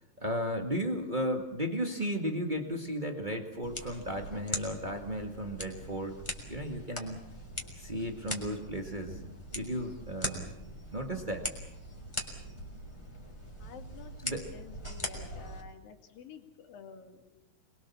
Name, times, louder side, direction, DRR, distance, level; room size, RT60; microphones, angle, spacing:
voice 1, 0.2-6.1 6.5-7.2 7.8-9.2 9.5-10.6 10.9-11.5 14.2-14.5, equal, 30° right, 3 dB, 0.9 m, -34 dB
sound 1, 3.6-15.6, equal, 10° left, 3.3 m, -41 dB
voice 2, 13.6-17.4, left 6 dB, 70° left, 5 dB, 4.0 m, -51 dB
27.0 x 22.0 x 7.2 m, 0.83 s
omnidirectional pair, 4.3 m